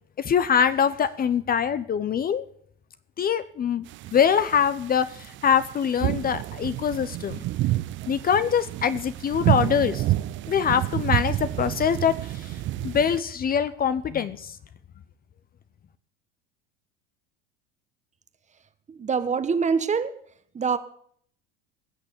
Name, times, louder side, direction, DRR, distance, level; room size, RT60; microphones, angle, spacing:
voice 1, 0.2-2.4 3.2-3.8 4.1-7.4 8.1-10.0 10.5-12.1 12.8-14.5, left 8 dB, 30° left, 13 dB, 0.8 m, -23 dB
sound 1, 3.9-13.2, right 15 dB, 40° right, 0.5 m, -29 dB
voice 2, 18.9-20.1 20.5-20.8, right 5 dB, 25° right, 12 dB, 1.3 m, -24 dB
18.0 x 6.7 x 8.4 m, 0.63 s
hypercardioid pair, 95°, 29 cm